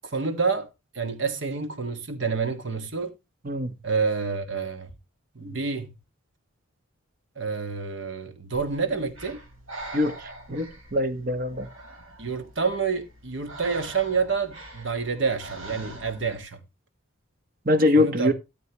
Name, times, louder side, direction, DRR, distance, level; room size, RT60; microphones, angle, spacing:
voice 1, 0.0-3.2 3.8-4.9 5.3-5.9 7.3-9.4 12.2-16.6 17.9-18.3, right 5 dB, 60° right, 1.6 m, -28 dB
Breathing, 8.5-16.4, right 2 dB, 80° right, 4.1 m, -44 dB
voice 2, 10.5-11.7 17.6-18.3, left 2 dB, 45° right, 1.3 m, -23 dB
13.5 x 7.8 x 3.0 m
head